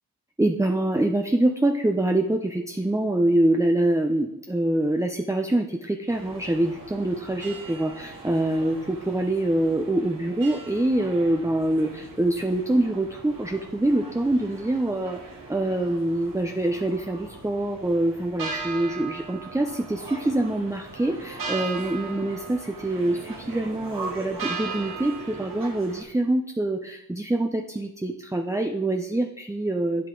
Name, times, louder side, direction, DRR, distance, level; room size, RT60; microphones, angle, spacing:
voice 1, 0.4-15.2 15.5-30.1, right 1 dB, 10° right, 4 dB, 0.8 m, -25 dB
sound 1, 6.1-26.0, right 4 dB, 80° right, 2.2 m, -39 dB
8.1 x 7.7 x 3.9 m, 0.83 s
cardioid pair, 45°, 33 cm